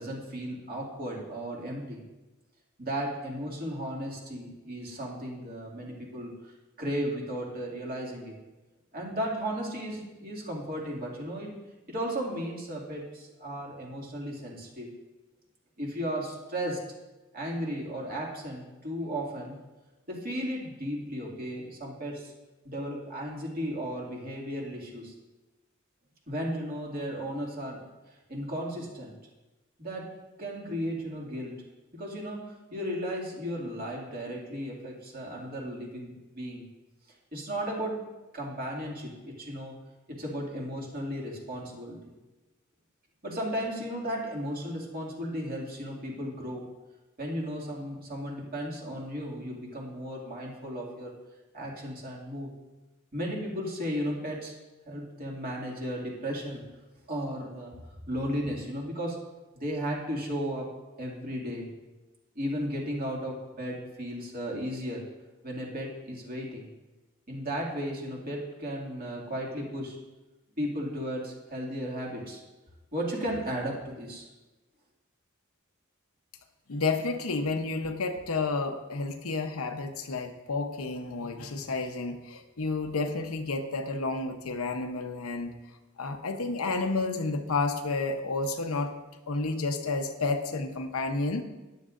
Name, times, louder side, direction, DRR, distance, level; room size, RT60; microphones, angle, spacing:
voice 1, 0.0-2.0 2.8-8.4 8.9-11.6 11.9-14.9 15.8-16.8 17.3-19.6 20.1-22.3 22.6-25.1 26.3-27.8 28.1-29.2 29.8-31.6 31.9-36.7 37.3-38.0 38.3-39.8 40.1-42.1 43.2-46.7 47.2-51.1 51.5-52.5 53.1-54.6 54.9-56.7 57.1-57.8 58.1-59.2 59.5-60.7 61.0-61.7 62.3-65.0 65.4-66.7 67.3-70.0 70.6-72.4 72.9-74.3, equal, 45° right, -3 dB, 2.3 m, -35 dB
voice 2, 76.7-85.5 86.0-88.9 89.3-91.4, left 3 dB, 80° left, 6 dB, 0.9 m, -31 dB
13.5 x 10.5 x 2.6 m, 1.1 s
head